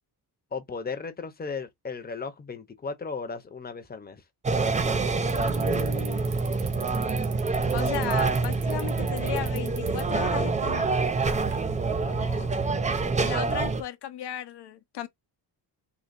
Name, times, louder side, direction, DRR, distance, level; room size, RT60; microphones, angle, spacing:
voice 1, 0.5-4.2 12.0-12.5, left 4 dB, 20° left, 0.8 m, -36 dB
sound 1, 4.4-13.8, right 4 dB, 20° right, 0.4 m, -26 dB
Bicycle, 5.3-12.6, right 8 dB, 85° right, 1.0 m, -47 dB
voice 2, 5.4-6.3 7.7-11.1 13.2-15.1, left 11 dB, 70° left, 0.9 m, -36 dB
4.0 x 2.7 x 2.6 m
cardioid pair, 115°, 42 cm